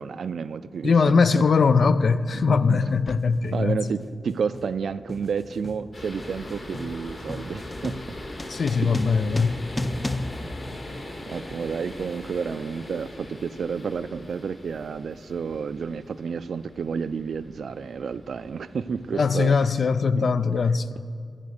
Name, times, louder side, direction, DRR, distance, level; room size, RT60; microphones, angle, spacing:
voice 1, 0.0-1.4 2.1-3.0 3.5-8.0 8.8-9.0 11.3-19.7 20.1-20.6, right 6 dB, 85° right, 0.4 m, -31 dB
voice 2, 0.8-3.8 8.5-9.6 19.1-20.9, left 5 dB, 70° left, 0.4 m, -21 dB
sound 1, 1.2-1.4 2.3-2.6 2.9-11.4, left 2 dB, 20° left, 0.5 m, -36 dB
sound 2, 5.9-19.8, left 1 dB, 50° left, 2.7 m, -41 dB
14.0 x 7.6 x 6.5 m
wide cardioid pair, 95°, 0 cm